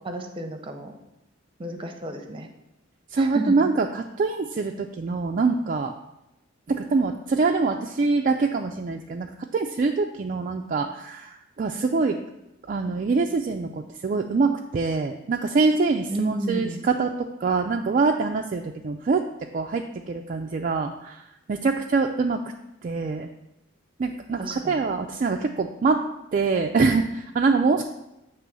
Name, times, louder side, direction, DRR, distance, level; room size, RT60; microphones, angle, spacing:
voice 1, 0.0-0.9 1.6-2.5 3.2-3.5 16.1-16.9 24.4-24.8, right 2 dB, 25° right, 5 dB, 0.7 m, -32 dB
voice 2, 3.1-5.9 6.7-12.2 12.7-17.1 17.4-19.2 19.5-21.2 21.5-22.4 22.8-23.3 24.0-26.0 26.3-27.8, right 4 dB, 40° right, 3 dB, 0.4 m, -24 dB
8.1 x 3.0 x 6.1 m, 0.91 s
head